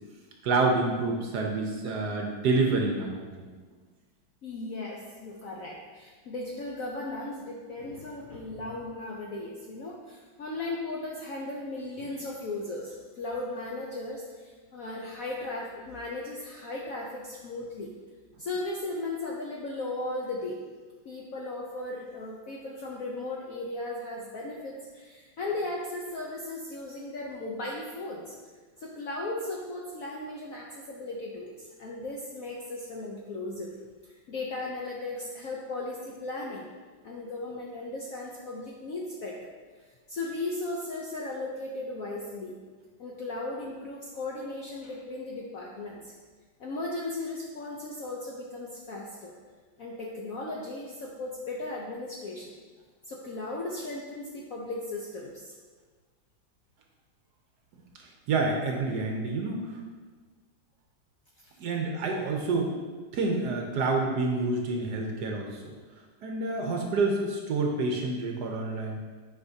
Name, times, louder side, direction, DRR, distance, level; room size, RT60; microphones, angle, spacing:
voice 1, 0.4-3.5 58.3-59.6 61.6-62.7 63.1-65.6 66.2-69.0, right 3 dB, 65° right, 1 dB, 1.1 m, -28 dB
voice 2, 4.4-17.9 18.4-20.7 21.0-28.4 28.8-33.8 34.0-36.7 37.0-39.4 40.1-42.6 43.0-46.1 46.6-49.3 49.8-52.5 53.1-55.5, left 2 dB, 70° left, -3 dB, 0.8 m, -36 dB
8.5 x 5.0 x 2.7 m, 1.4 s
omnidirectional pair, 2.1 m